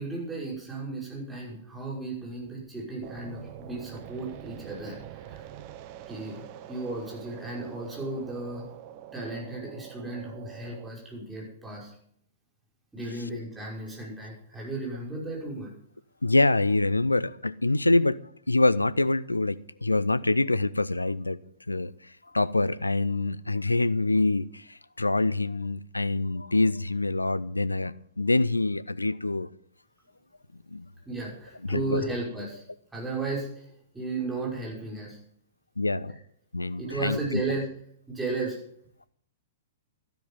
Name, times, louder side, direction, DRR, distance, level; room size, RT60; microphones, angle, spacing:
voice 1, 0.0-5.4 6.1-6.4 6.7-8.7 9.1-11.9 12.9-15.7 31.1-32.6 32.9-33.7 33.9-35.2 36.1-36.2 36.8-37.7 38.1-38.6, right 2 dB, 10° right, 5.6 m, -34 dB
sound 1, 3.0-10.9, right 11 dB, 40° right, 1.0 m, -45 dB
voice 2, 16.2-18.2 18.5-21.4 21.7-21.9 22.3-29.5 30.7-30.9 31.7-32.0 35.8-36.1 36.5-37.4, left 2 dB, 80° left, 0.6 m, -25 dB
13.0 x 12.0 x 5.6 m
figure-of-eight pair, 105°, 0 cm